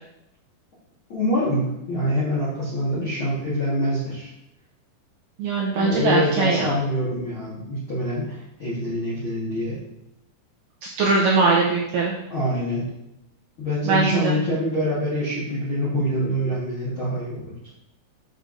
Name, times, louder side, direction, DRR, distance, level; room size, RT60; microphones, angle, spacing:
voice 1, 1.1-4.3 5.8-9.8 12.3-12.9 13.6-17.5, equal, 60° left, -11 dB, 1.3 m, -25 dB
voice 2, 5.4-6.8 10.8-12.1 13.9-14.4, right 4 dB, 80° right, -3 dB, 1.9 m, -21 dB
6.7 x 6.1 x 2.5 m, 0.84 s
omnidirectional pair, 4.6 m